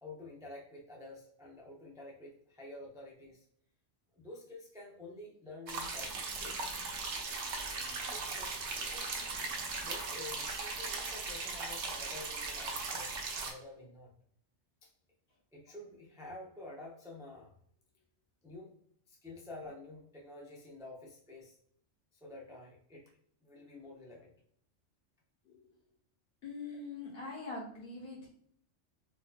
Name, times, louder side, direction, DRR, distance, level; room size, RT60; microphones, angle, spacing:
voice 1, 0.0-3.4 4.1-6.9 7.3-7.4 8.0-9.1 9.8-14.1 14.8-14.9 15.5-17.5 18.4-18.7 19.1-21.6 22.1-23.1 23.4-24.3, left 2 dB, 5° right, -3 dB, 0.3 m, -50 dB
sound 1, 5.7-13.5, right 4 dB, 70° right, 0.9 m, -38 dB
voice 2, 26.4-28.3, left 3 dB, 55° left, -4 dB, 1.4 m, -43 dB
4.2 x 2.6 x 2.3 m, 0.67 s
omnidirectional pair, 1.3 m